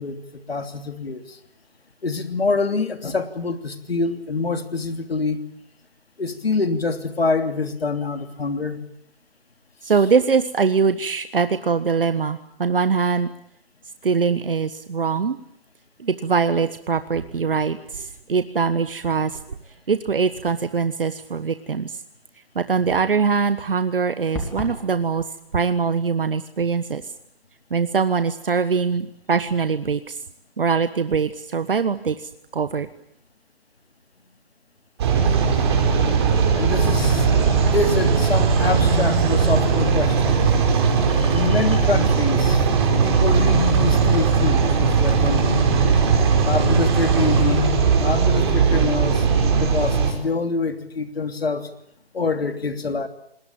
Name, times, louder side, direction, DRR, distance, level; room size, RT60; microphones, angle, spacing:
voice 1, 0.0-1.4 2.0-5.4 6.2-8.8 36.5-37.3 37.7-40.4 41.3-42.7 43.0-45.6 46.4-47.7 48.0-51.7 52.1-53.1, left 3 dB, 70° left, 8 dB, 3.2 m, -25 dB
voice 2, 9.8-13.3 14.0-15.4 16.0-19.4 19.9-21.9 22.5-25.2 25.5-27.0 27.7-30.2 30.6-32.2 32.5-32.9, right 5 dB, 60° right, 11 dB, 1.4 m, -22 dB
sound 1, 24.3-24.8, left 1 dB, 5° left, 2.5 m, -30 dB
sound 2, 35.0-50.1, right 5 dB, 25° right, 5.2 m, -18 dB
27.5 x 20.5 x 8.8 m, 0.71 s
figure-of-eight pair, 160°, 31 cm